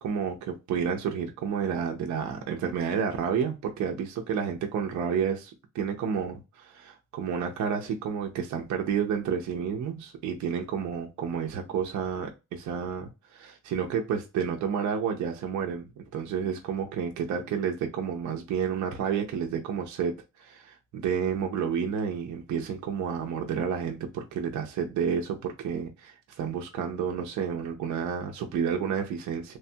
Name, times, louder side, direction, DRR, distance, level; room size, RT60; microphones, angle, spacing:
voice 1, 0.0-15.8 16.1-29.6, right 7 dB, 65° right, 0.5 m, -30 dB
3.1 x 2.2 x 2.6 m
wide cardioid pair, 175°, 31 cm